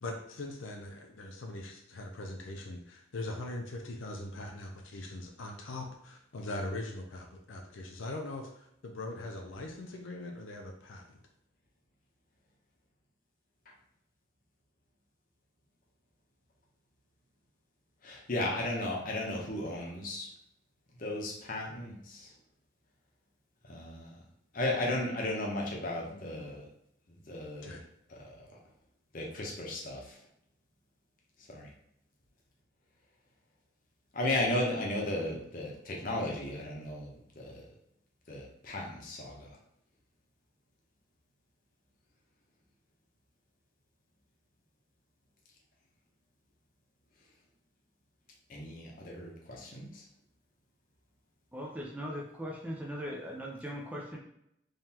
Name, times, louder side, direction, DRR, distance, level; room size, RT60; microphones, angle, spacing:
voice 1, 0.0-11.2 26.0-26.4 27.6-27.8, left 2 dB, 85° left, 2 dB, 0.6 m, -41 dB
voice 2, 18.0-20.3 21.0-22.3 23.6-24.2 24.5-26.7 27.1-27.8 28.1-28.6 29.1-30.2 31.5-31.7 34.1-37.6 38.3-39.6 48.5-50.0, left 1 dB, 45° left, -1 dB, 0.8 m, -35 dB
voice 3, 51.5-54.2, equal, 10° right, -2 dB, 0.5 m, -39 dB
3.7 x 3.1 x 2.9 m, 0.75 s
head